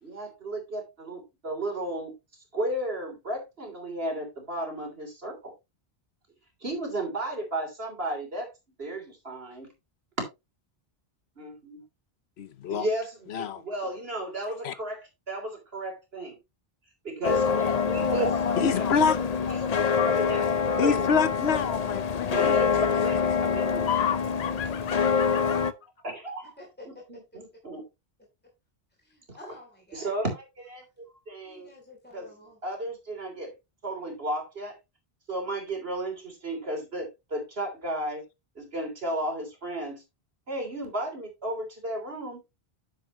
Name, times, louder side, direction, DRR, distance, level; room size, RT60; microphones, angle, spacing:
voice 1, 0.0-2.1 2.5-5.5 6.6-8.5 8.8-9.7 11.4-11.8 12.7-16.4 17.0-18.9 19.5-21.1 22.3-23.9 26.0-26.5 26.9-27.8 29.3-29.4 29.9-30.8 31.3-31.7 32.1-32.3 32.6-33.5 33.8-34.8 35.3-38.2 38.6-40.0 40.5-42.4, right 1 dB, 70° right, 3.5 m, -34 dB
voice 2, 12.4-12.9 13.3-13.6 14.6-14.7 18.6-19.2 20.8-23.1 23.9-25.7, left 6 dB, 85° left, 1.0 m, -28 dB
sound 1, 17.2-25.7, left 6 dB, 45° left, 0.7 m, -25 dB
voice 3, 26.4-27.0 29.0-30.2 31.4-32.6, left 1 dB, 10° left, 3.1 m, -49 dB
10.0 x 7.3 x 3.0 m
omnidirectional pair, 1.1 m